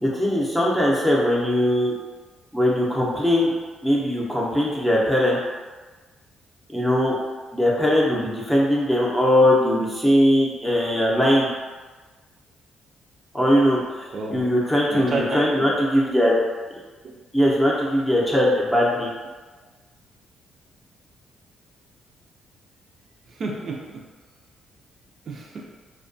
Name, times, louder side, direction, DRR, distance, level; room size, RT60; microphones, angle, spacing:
voice 1, 0.0-1.9 2.5-3.5 3.8-5.4 6.7-7.1 7.5-11.5 13.3-16.3 17.3-19.1, equal, 5° left, -4 dB, 0.6 m, -20 dB
voice 2, 14.1-14.4 14.9-15.7 23.3-24.0 25.3-25.6, right 2 dB, 55° right, -2 dB, 0.4 m, -30 dB
2.3 x 2.2 x 2.6 m, 1.3 s
cardioid pair, 90°, 0 cm